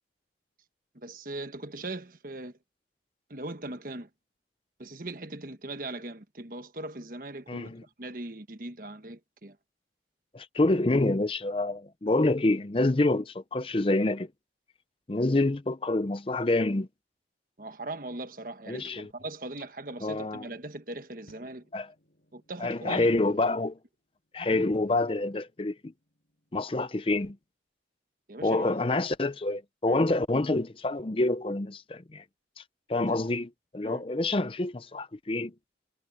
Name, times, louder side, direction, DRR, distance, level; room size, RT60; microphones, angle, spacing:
voice 1, 0.9-2.6 3.3-4.1 4.8-7.7 8.0-9.6 17.6-21.6 22.3-23.4 28.3-28.8 29.9-30.0 33.0-33.2 33.8-34.0, right 2 dB, 50° right, 1.4 m, -40 dB
voice 2, 7.5-7.8 10.3-14.3 15.1-16.9 18.7-19.1 20.0-20.4 21.7-21.9 22.6-23.8 24.3-25.8 26.5-27.4 28.4-32.2 32.9-35.5, left 2 dB, 30° left, 0.6 m, -27 dB
sound 1, 21.3-27.5, equal, 55° left, 6.1 m, -67 dB
head